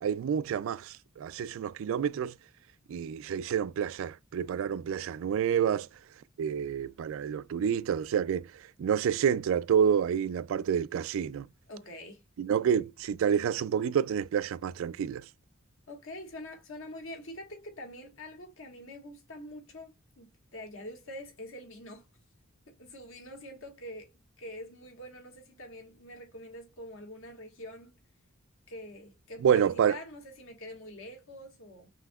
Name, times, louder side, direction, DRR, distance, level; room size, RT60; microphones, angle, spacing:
voice 1, 0.0-2.3 2.9-5.9 6.4-8.5 8.8-11.5 12.4-15.3 29.4-30.0, right 8 dB, 70° right, 0.3 m, -28 dB
voice 2, 11.7-12.2 15.9-22.1 22.7-24.1 24.4-27.9 28.7-31.9, left 1 dB, 70° left, 1.6 m, -45 dB
5.6 x 2.9 x 2.3 m
head